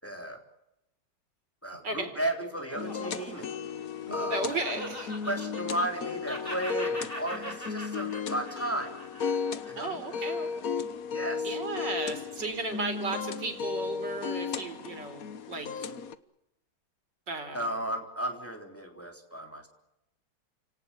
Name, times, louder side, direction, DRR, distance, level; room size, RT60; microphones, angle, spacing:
voice 1, 0.0-0.4 1.6-3.5 4.1-4.4 5.2-8.9 9.7-10.0 11.1-11.6 17.5-19.7, right 1 dB, 5° left, 4 dB, 3.6 m, -34 dB
Laughter, 1.7-6.0 6.2-10.7, equal, 30° left, 6.6 m, -42 dB
sound 1, 2.8-16.2, left 6 dB, 55° left, 1.5 m, -35 dB
voice 2, 4.3-5.1 9.8-10.5 11.4-15.9 17.3-17.8, right 3 dB, 80° right, 7 dB, 4.6 m, -35 dB
30.0 x 18.5 x 8.6 m, 0.88 s
omnidirectional pair, 1.9 m